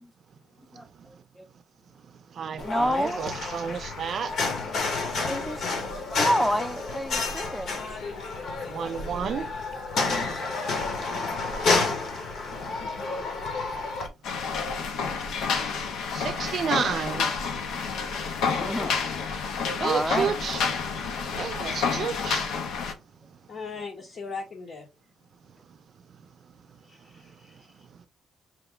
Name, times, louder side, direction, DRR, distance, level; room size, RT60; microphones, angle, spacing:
voice 1, 0.7-1.5 2.6-3.2 5.2-5.7 6.2-7.8 18.5-18.9 19.8-20.3, equal, ahead, 0.6 m, -29 dB
voice 2, 2.3-4.3 8.6-9.5 16.1-17.3 19.8-20.6 21.4-22.5, right 7 dB, 55° right, 0.5 m, -31 dB
sound 1, 2.6-14.1, left 3 dB, 70° left, 1.1 m, -30 dB
sound 2, 14.2-22.9, left 5 dB, 85° left, 0.7 m, -29 dB
voice 3, 18.6-19.0 23.5-24.9 26.9-27.7, left 4 dB, 55° left, 0.8 m, -38 dB
4.8 x 2.2 x 3.7 m
cardioid pair, 90°, 0 cm